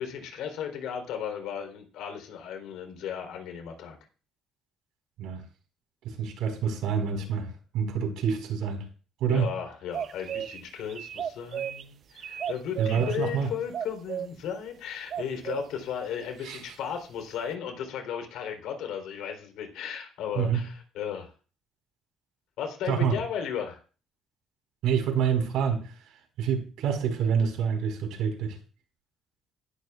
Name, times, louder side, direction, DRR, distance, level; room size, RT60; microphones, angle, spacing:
voice 1, 0.0-4.0 9.3-21.3 22.6-23.8, left 8 dB, 85° left, 5 dB, 3.5 m, -35 dB
voice 2, 6.0-8.9 9.2-9.5 12.8-13.5 16.4-16.7 20.3-20.7 22.9-23.2 24.8-25.9 26.4-28.6, right 7 dB, 90° right, 4 dB, 4.4 m, -27 dB
sound 1, 9.9-10.6 10.9-11.8 12.2-13.2 13.7-14.3 15.1-15.6, right 9 dB, 50° right, 0.6 m, -33 dB
19.0 x 11.5 x 2.4 m, 0.37 s
cardioid pair, 125°, 0 cm